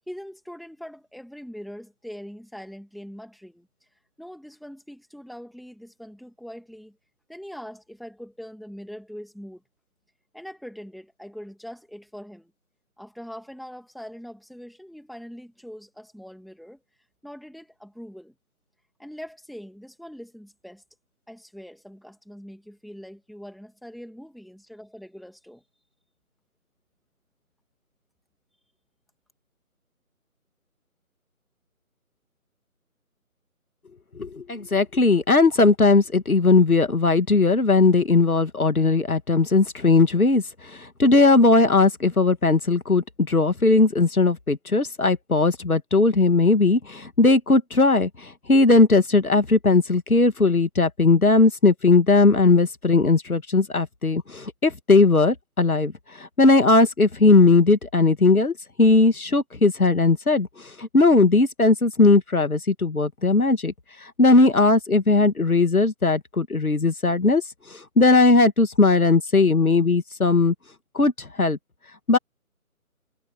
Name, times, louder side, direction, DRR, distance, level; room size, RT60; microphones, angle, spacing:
voice 1, 0.1-3.7 4.2-7.0 7.3-9.6 10.3-12.5 13.0-16.8 17.2-18.3 19.0-20.8 21.3-25.6, equal, ahead, 2.4 m, -42 dB
voice 2, 34.2-63.7 64.0-67.4 67.7-70.5 70.9-71.6 72.1-72.2, left 3 dB, 75° left, 2.2 m, -18 dB
figure-of-eight pair, 155°, 43 cm